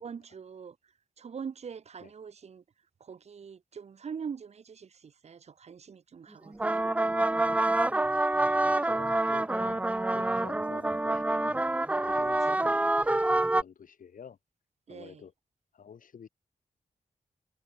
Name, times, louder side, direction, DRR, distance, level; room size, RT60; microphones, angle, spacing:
voice 1, 0.0-2.6 3.0-6.8 12.2-12.3 14.9-15.2, right 6 dB, 50° right, 0.7 m, -43 dB
sound 1, 6.5-13.6, right 2 dB, 10° right, 0.3 m, -27 dB
voice 2, 8.4-11.7 12.0-14.4 14.9-15.3 15.7-16.3, left 7 dB, 80° left, 3.7 m, -49 dB
wide cardioid pair, 125°, 14 cm